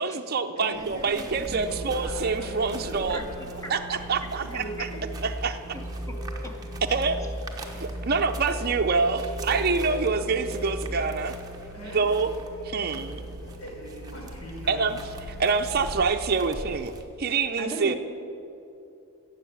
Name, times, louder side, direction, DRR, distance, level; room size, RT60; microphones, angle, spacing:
voice 1, 0.0-3.3 3.7-4.6 5.2-5.6 6.9-7.2 7.8-11.3 11.9-12.3 12.6-13.2 14.7-15.0 15.3-16.9 17.2-17.9, right 4 dB, 45° right, 6 dB, 0.6 m, -26 dB
voice 2, 0.5-3.7 4.3-5.0 11.7-12.0 13.6-14.9, right 1 dB, 70° left, -3 dB, 4.0 m, -40 dB
sound 1, 0.7-17.0, right 2 dB, 15° right, 1.0 m, -44 dB
Musical instrument, 1.2-16.2, right 1 dB, 45° left, 1.7 m, -37 dB
voice 3, 3.1-3.7 4.5-4.9 5.7-6.6 6.9-7.0 17.6-17.9, right 1 dB, 15° left, 2 dB, 1.3 m, -39 dB
15.5 x 7.4 x 8.5 m, 2.8 s
head